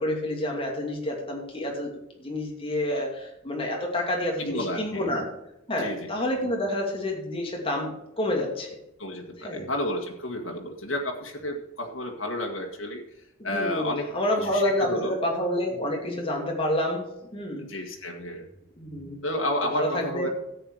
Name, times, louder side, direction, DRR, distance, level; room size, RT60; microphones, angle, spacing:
voice 1, 0.0-1.9 2.2-5.3 5.7-8.8 9.4-9.7 13.4-17.7 18.8-19.2 19.7-20.3, left 1 dB, 30° left, 0 dB, 2.6 m, -28 dB
voice 2, 4.4-5.1 5.8-6.1 9.0-13.0 13.4-14.1 14.4-15.1 17.6-18.5 19.2-20.3, left 1 dB, 80° left, 1 dB, 1.9 m, -31 dB
13.5 x 8.7 x 4.9 m, 0.86 s
head